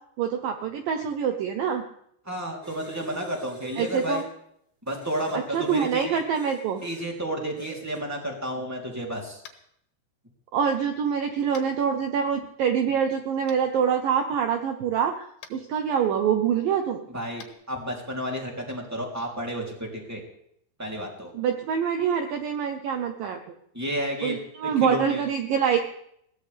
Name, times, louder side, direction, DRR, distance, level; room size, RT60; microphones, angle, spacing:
voice 1, 0.2-1.8 3.8-4.2 5.3-6.8 10.5-17.0 21.3-23.4 24.2-25.8, right 7 dB, 80° right, 6 dB, 2.0 m, -25 dB
voice 2, 2.2-4.2 4.9-6.2 6.8-9.4 17.1-20.2 20.8-21.3 23.7-24.4 24.6-25.2, equal, 5° right, 0 dB, 2.1 m, -31 dB
sound 1, 2.6-4.3 4.9-7.1 7.6-8.1, right 2 dB, 20° right, 2.2 m, -46 dB
Tap, 9.4-9.7 11.5-11.7 13.5-13.6 15.4-15.6 17.4-17.5, left 8 dB, 70° left, 3.4 m, -45 dB
21.5 x 17.0 x 3.4 m, 0.70 s
omnidirectional pair, 5.3 m